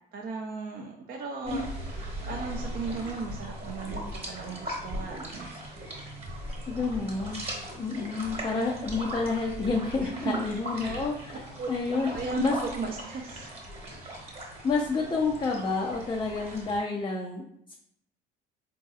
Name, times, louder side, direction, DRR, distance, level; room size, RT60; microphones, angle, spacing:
voice 1, 0.1-2.0 2.3-6.2 10.0-10.4 10.7-11.1 11.6-11.7 12.1-13.6, right 4 dB, 45° right, 1 dB, 0.4 m, -36 dB
sound 1, 1.4-16.8, equal, 30° right, 1.1 m, -38 dB
voice 2, 6.7-7.4 7.8-11.4 11.7-12.1 12.4-12.5 14.6-17.7, left 4 dB, 20° left, -1 dB, 0.4 m, -29 dB
3.8 x 2.6 x 2.4 m, 0.74 s
cardioid pair, 95°, 21 cm